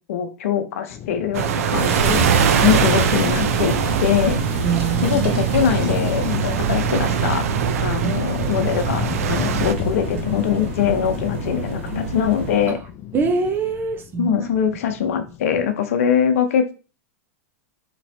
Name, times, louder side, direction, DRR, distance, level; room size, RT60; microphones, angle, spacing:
voice 1, 0.1-2.3 2.6-3.7 4.0-4.4 5.0-7.4 7.8-12.8 14.2-16.7, left 8 dB, 70° left, 8 dB, 0.7 m, -22 dB
sound 1, 0.9-15.7, left 9 dB, 35° left, 0.4 m, -33 dB
sound 2, 1.3-9.7, right 9 dB, 75° right, 0.5 m, -23 dB
sound 3, 1.7-12.7, right 4 dB, 60° right, 1.2 m, -26 dB
voice 2, 4.6-5.3 8.0-8.1 12.7-12.8 13.1-14.5, right 5 dB, 25° right, 7 dB, 0.7 m, -24 dB
4.2 x 3.1 x 2.7 m, 0.33 s
hypercardioid pair, 115°, 8 cm